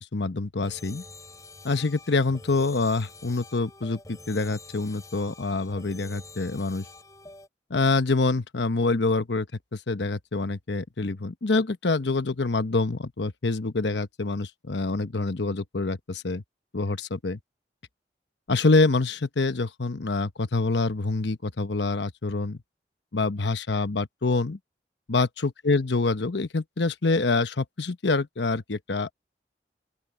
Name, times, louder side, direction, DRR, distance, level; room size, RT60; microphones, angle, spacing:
voice 1, 0.1-1.0 1.6-6.8 7.7-9.5 9.7-16.4 16.7-17.4 18.5-22.6 23.1-24.6 25.1-29.1, left 3 dB, 80° left, 1.0 m, -26 dB
sound 1, 0.6-7.5, left 3 dB, 20° left, 5.7 m, -47 dB
open air
head